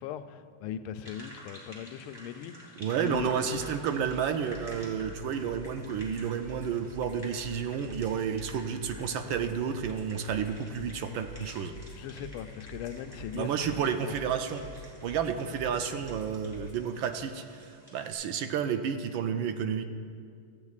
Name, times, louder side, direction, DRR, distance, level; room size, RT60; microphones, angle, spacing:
voice 1, 0.0-3.3 11.4-11.6 12.0-13.6 13.8-14.1, left 9 dB, 90° left, 10 dB, 1.5 m, -39 dB
sound 1, 1.0-18.1, equal, 10° right, 3.1 m, -51 dB
voice 2, 2.8-11.7 13.3-19.8, right 7 dB, 75° right, 7 dB, 1.3 m, -31 dB
sound 2, 3.1-16.7, equal, 40° left, 2.2 m, -47 dB
17.5 x 13.5 x 2.4 m, 2.2 s
omnidirectional pair, 2.4 m